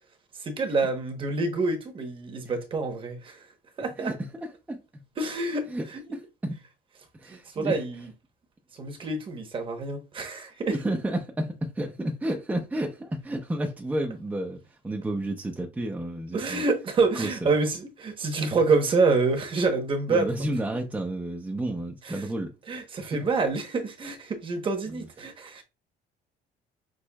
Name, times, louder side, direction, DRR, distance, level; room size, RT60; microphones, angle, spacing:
voice 1, 0.4-3.4 3.8-4.1 5.2-6.0 7.3-8.1 8.8-10.8 16.3-20.5 22.0-22.2 22.7-25.6, right 3 dB, 30° right, 1.0 m, -27 dB
voice 2, 4.0-5.0 5.7-6.6 7.1-7.8 10.7-16.6 17.1-17.5 20.1-22.5 23.0-23.3 24.9-25.1, right 1 dB, 10° right, 0.5 m, -31 dB
6.2 x 3.1 x 2.3 m
cardioid pair, 155°, 17 cm